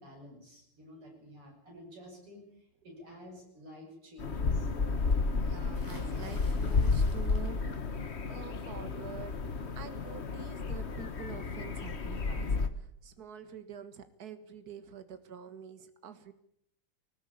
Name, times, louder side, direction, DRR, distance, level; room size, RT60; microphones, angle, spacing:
voice 1, 0.0-2.4 2.8-4.7, left 1 dB, 85° right, 0 dB, 8.2 m, -51 dB
sound 1, 4.2-12.7, left 4 dB, 35° left, 1.3 m, -32 dB
voice 2, 5.4-7.6 8.0-9.4 9.8-16.3, right 7 dB, 45° right, 10 dB, 2.1 m, -47 dB
sound 2, 5.7-7.8 8.2-8.7 10.1-10.2 10.5-10.6, left 1 dB, 10° left, 4.6 m, -52 dB
20.0 x 19.5 x 8.7 m, 0.75 s
omnidirectional pair, 2.4 m